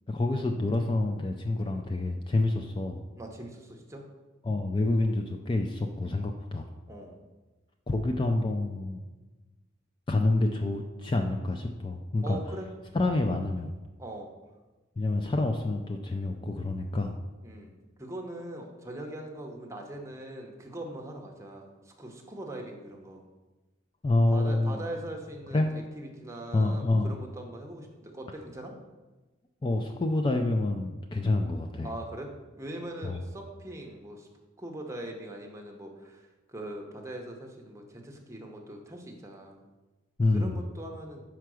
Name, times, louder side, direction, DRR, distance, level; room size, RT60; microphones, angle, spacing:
voice 1, 0.1-3.0 4.4-6.7 7.9-9.0 10.1-12.4 12.9-13.7 15.0-17.2 24.0-24.8 25.5-25.7 26.5-27.1 29.6-31.9 33.0-33.2 40.2-40.6, left 2 dB, 25° left, 4 dB, 0.4 m, -27 dB
voice 2, 3.2-4.1 6.9-7.2 12.2-12.7 14.0-14.3 17.4-17.7 18.0-23.2 24.3-28.7 31.2-31.4 31.8-34.3 34.6-39.6 40.3-41.2, right 1 dB, 15° right, 1 dB, 0.8 m, -41 dB
5.8 x 4.6 x 6.2 m, 1.2 s
head